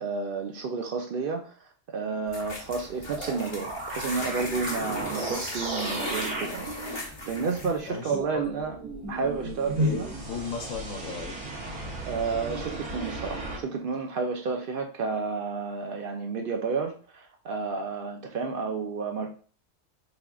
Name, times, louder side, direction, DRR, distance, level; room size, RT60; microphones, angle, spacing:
voice 1, 0.0-1.5 1.9-8.8 9.1-10.1 12.0-19.3, right 4 dB, 65° right, 3 dB, 0.5 m, -31 dB
sound 1, 2.3-7.9, left 2 dB, 25° left, 0.8 m, -37 dB
sound 2, 3.1-13.6, right 1 dB, 85° right, 1.4 m, -34 dB
voice 2, 7.9-8.4 9.8-11.3, left 5 dB, 80° left, 1 dB, 1.0 m, -35 dB
3.6 x 3.4 x 2.3 m, 0.40 s
omnidirectional pair, 1.3 m